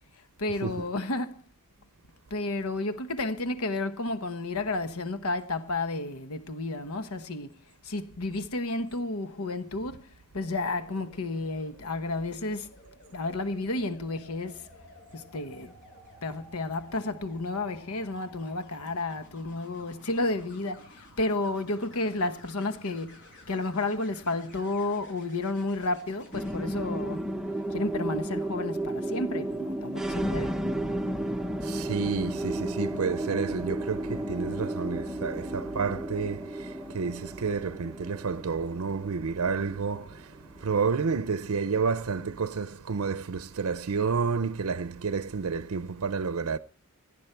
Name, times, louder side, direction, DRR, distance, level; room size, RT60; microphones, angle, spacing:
voice 1, 0.4-1.4 2.3-7.6 7.8-10.1 10.3-12.7 13.1-14.7 15.1-15.7 16.2-27.2 27.7-30.6, left 2 dB, 80° left, 1.2 m, -32 dB
sound 1, 10.4-26.5 28.4-28.7, left 1 dB, 60° left, 6.6 m, -53 dB
sound 2, 26.3-40.9, right 1 dB, ahead, 0.7 m, -33 dB
voice 2, 31.6-46.6, right 5 dB, 75° right, 0.6 m, -30 dB
18.0 x 11.5 x 4.5 m
head